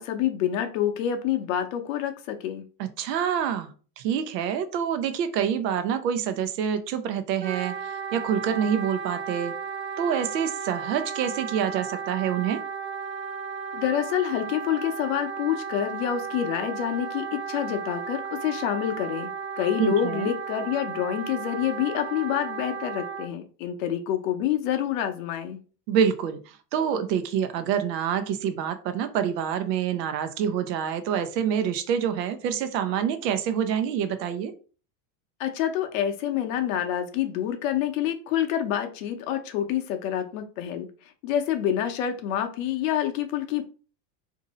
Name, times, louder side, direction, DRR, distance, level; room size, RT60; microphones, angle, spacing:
voice 1, 0.0-2.7 13.7-19.3 19.6-25.6 35.4-40.9 41.2-43.6, left 10 dB, 55° left, 6 dB, 0.6 m, -27 dB
voice 2, 2.8-9.5 10.0-12.6 19.8-20.3 25.9-34.5, right 8 dB, 85° right, 10 dB, 0.7 m, -27 dB
Wind instrument woodwind instrument, 7.4-23.3, right 5 dB, 35° right, 0.4 m, -34 dB
2.6 x 2.6 x 4.1 m, 0.38 s
supercardioid pair, 170°, 48 cm